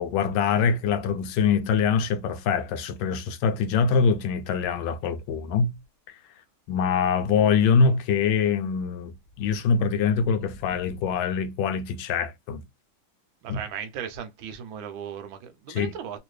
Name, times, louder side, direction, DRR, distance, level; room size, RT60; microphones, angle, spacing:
voice 1, 0.0-5.7 6.7-12.6 13.5-13.6 15.7-15.9, left 6 dB, 75° left, 1.3 m, -24 dB
voice 2, 13.4-16.2, right 8 dB, 75° right, 1.5 m, -36 dB
3.6 x 2.5 x 3.1 m
omnidirectional pair, 2.2 m